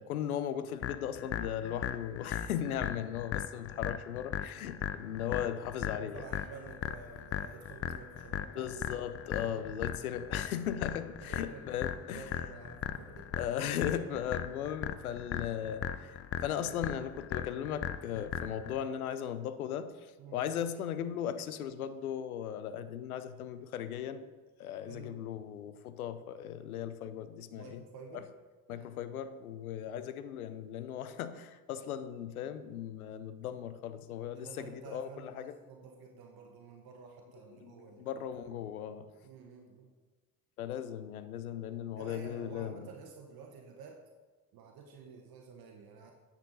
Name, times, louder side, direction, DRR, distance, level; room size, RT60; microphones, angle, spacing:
voice 1, 0.0-6.2 8.6-12.3 13.4-16.2 16.4-19.9 20.3-24.3 24.6-27.8 28.1-28.2 28.7-35.6 37.5-39.1 40.6-42.9, left 9 dB, 90° left, 12 dB, 0.6 m, -37 dB
sound 1, 0.8-18.8, left 10 dB, 35° left, 0.5 m, -38 dB
voice 2, 6.0-8.9 9.8-10.0 11.2-11.6 12.0-13.3 20.2-20.5 24.9-25.1 27.5-28.3 28.7-29.1 34.3-38.1 39.2-39.9 42.0-44.0 44.5-46.1, right 5 dB, 55° right, 2 dB, 1.1 m, -51 dB
9.4 x 6.4 x 4.0 m, 1.3 s
hypercardioid pair, 55°, 42 cm